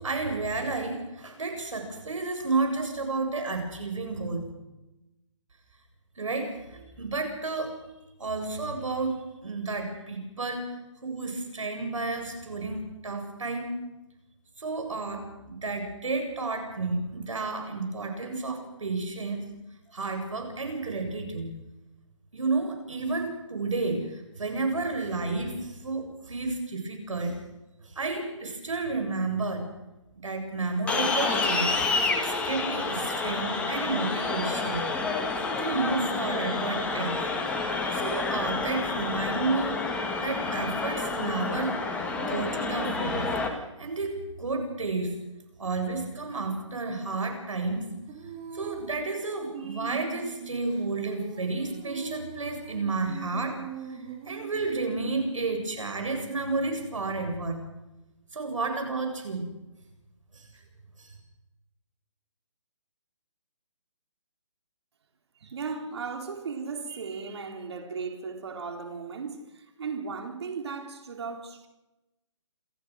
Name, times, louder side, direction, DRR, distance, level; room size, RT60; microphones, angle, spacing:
voice 1, 0.0-4.5 6.2-7.8 8.2-10.7 11.0-13.7 14.6-19.5 19.9-21.5 22.3-27.4 27.8-29.7 30.2-34.9 35.6-37.2 37.9-41.8 42.2-45.1 45.6-47.9 48.5-53.6 53.9-57.6 58.3-59.5 60.3-60.4 61.0-61.1, right 3 dB, 75° right, 7.5 m, -31 dB
sound 1, 30.9-43.5, left 3 dB, 5° left, 2.0 m, -29 dB
Female singing, 48.1-55.8, right 7 dB, 25° right, 3.3 m, -42 dB
voice 2, 65.3-71.7, right 5 dB, 55° right, 4.2 m, -36 dB
28.0 x 14.0 x 6.6 m
hypercardioid pair, 155°, 16 cm